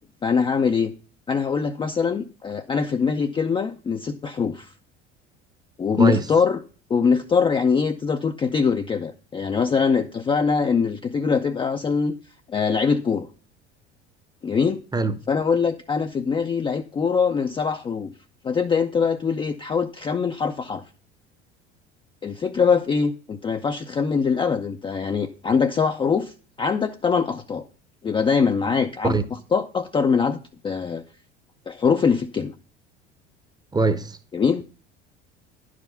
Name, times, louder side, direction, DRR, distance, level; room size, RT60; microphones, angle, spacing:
voice 1, 0.2-0.9 1.3-4.7 5.8-6.6 6.9-12.1 12.5-13.3 14.4-14.8 15.3-18.1 18.4-20.8 22.2-27.7 28.0-29.2 29.5-31.0 31.7-32.5 34.3-34.6, left 5 dB, 15° left, 0.4 m, -23 dB
voice 2, 33.7-34.2, right 3 dB, 10° right, 0.7 m, -21 dB
10.5 x 5.0 x 5.5 m
figure-of-eight pair, 65°, 34 cm